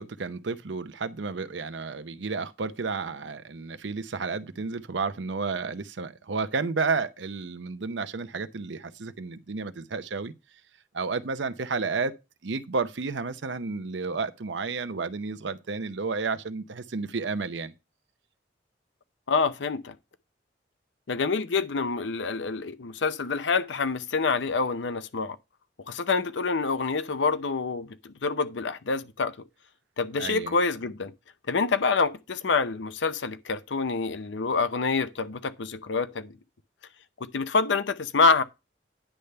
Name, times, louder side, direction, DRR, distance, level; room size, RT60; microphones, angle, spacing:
voice 1, 0.0-10.3 10.9-12.1 12.4-17.7 30.2-30.6, right 4 dB, 85° right, 0.7 m, -31 dB
voice 2, 19.3-19.9 21.1-25.4 25.9-29.3 30.0-31.1 31.5-36.3 37.2-38.4, left 4 dB, 85° left, 0.7 m, -27 dB
10.0 x 3.4 x 6.7 m
head